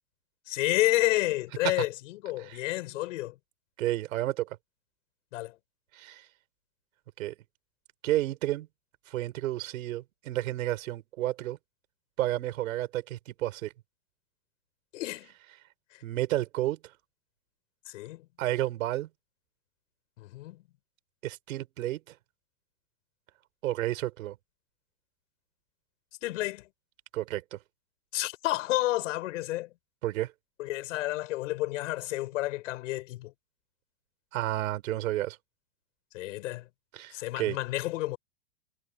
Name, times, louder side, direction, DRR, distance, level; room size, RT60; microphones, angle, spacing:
voice 1, 0.5-3.4 5.3-5.5 14.9-15.3 17.9-18.2 20.2-20.6 26.2-26.6 28.1-29.7 30.6-33.3 36.1-36.7 37.1-38.2, left 17 dB, 55° left, 7.9 m, -30 dB
voice 2, 3.8-4.6 5.9-6.2 7.2-7.3 8.0-8.7 9.1-11.6 12.2-13.7 16.0-16.8 18.4-19.1 21.2-22.1 23.6-24.3 27.1-27.6 30.0-30.3 34.3-35.4 36.9-37.6, right 15 dB, 60° right, 6.3 m, -31 dB
supercardioid pair, 155°, 46 cm